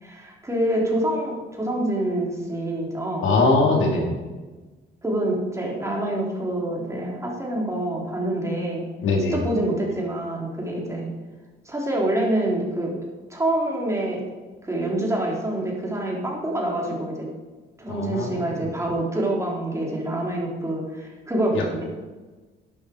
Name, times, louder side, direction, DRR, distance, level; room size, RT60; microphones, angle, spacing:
voice 1, 0.0-3.4 5.0-8.9 9.3-11.1 11.7-13.0 13.3-14.2 14.6-17.2 17.8-21.8, right 1 dB, 15° right, -2 dB, 4.4 m, -26 dB
voice 2, 3.2-4.1 9.0-9.4 17.9-18.5 21.5-21.6, left 3 dB, 80° left, 1 dB, 3.1 m, -21 dB
13.0 x 11.5 x 4.9 m, 1.3 s
cardioid pair, 90°, 20 cm